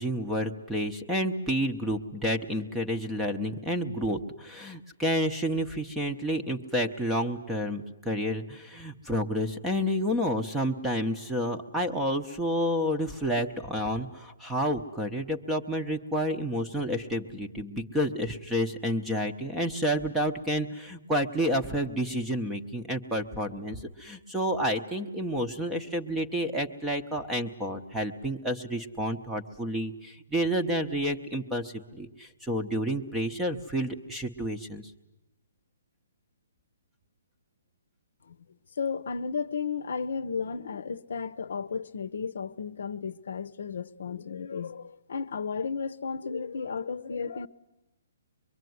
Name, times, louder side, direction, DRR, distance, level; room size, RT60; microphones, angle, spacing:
voice 1, 0.0-34.9, equal, 5° right, 0.9 m, -30 dB
voice 2, 38.8-47.5, left 5 dB, 55° left, 0.9 m, -33 dB
24.5 x 23.5 x 9.4 m
hypercardioid pair, 180°, 0 cm